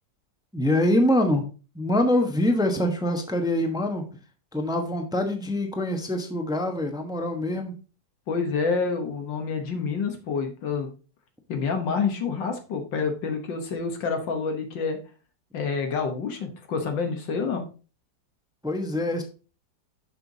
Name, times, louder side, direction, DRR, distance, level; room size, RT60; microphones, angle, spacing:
voice 1, 0.5-1.5 1.7-4.1 4.5-7.7 18.6-19.2, left 1 dB, 5° right, 5 dB, 0.5 m, -24 dB
voice 2, 8.3-10.9 11.5-15.0 15.5-17.6, left 5 dB, 80° left, 4 dB, 1.9 m, -28 dB
6.7 x 5.6 x 3.9 m, 0.34 s
omnidirectional pair, 2.0 m